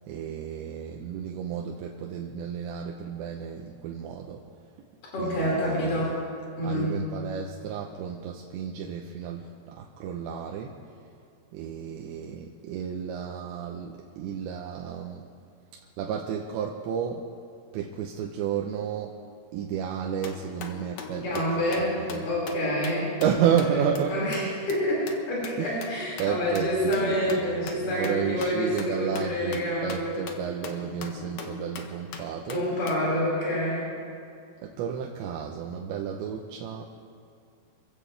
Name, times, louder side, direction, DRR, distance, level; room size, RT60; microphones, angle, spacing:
voice 1, 0.1-4.5 5.2-6.1 6.6-10.8 11.5-15.3 15.7-17.3 17.7-19.2 19.5-22.3 23.2-24.5 25.6-25.8 26.2-32.9 34.6-36.9, right 8 dB, 85° right, 0 dB, 3.2 m, -32 dB
voice 2, 5.1-6.2 6.6-6.9 21.2-22.0 22.2-23.1 24.1-24.4 24.7-30.1 32.5-33.9, equal, 50° left, -6 dB, 6.5 m, -27 dB
sound 1, 20.2-24.0 24.3-24.4 24.7-24.8 25.1-33.0, left 5 dB, 85° left, 1.5 m, -42 dB
27.0 x 15.5 x 3.3 m, 2.4 s
omnidirectional pair, 5.0 m